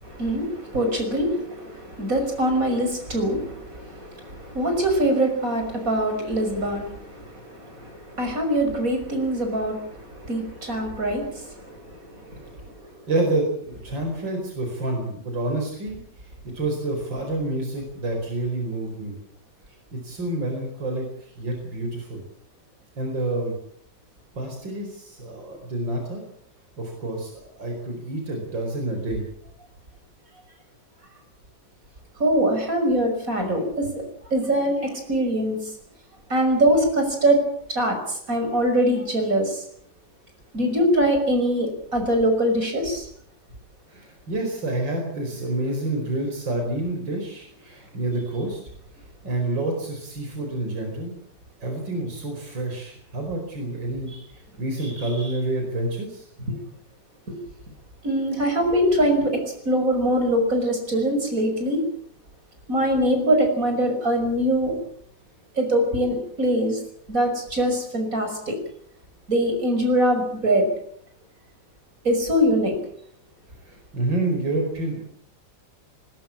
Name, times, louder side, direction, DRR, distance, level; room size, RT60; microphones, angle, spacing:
voice 1, 0.0-12.5 32.2-34.0 34.3-35.6 36.3-37.4 37.7-39.6 40.5-43.0 56.5-56.6 57.3-57.4 58.0-61.8 62.7-64.8 65.6-66.8 67.1-68.5 69.3-70.7 72.0-72.7, right 1 dB, 45° right, 5 dB, 6.2 m, -23 dB
voice 2, 13.1-16.3 16.5-19.2 19.9-22.2 23.0-23.5 24.4-26.2 26.8-29.3 43.9-48.6 49.2-51.1 51.6-56.3 73.7-75.1, right 2 dB, 85° right, 3 dB, 5.4 m, -28 dB
20.0 x 20.0 x 8.7 m, 0.65 s
omnidirectional pair, 2.0 m